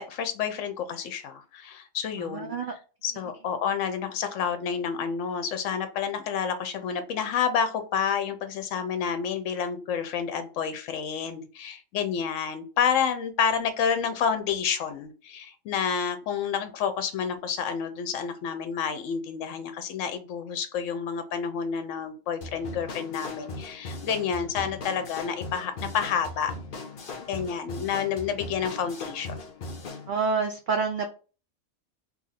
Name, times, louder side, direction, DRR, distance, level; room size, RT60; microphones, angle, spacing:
voice 1, 0.0-2.5 3.0-26.5 27.2-29.3, left 7 dB, 75° left, 8 dB, 1.0 m, -29 dB
voice 2, 2.2-2.7 30.1-31.1, right 5 dB, 60° right, 4 dB, 0.5 m, -28 dB
sound 1, 22.4-30.1, left 2 dB, 50° left, 0.7 m, -39 dB
2.8 x 2.6 x 4.0 m, 0.35 s
omnidirectional pair, 1.3 m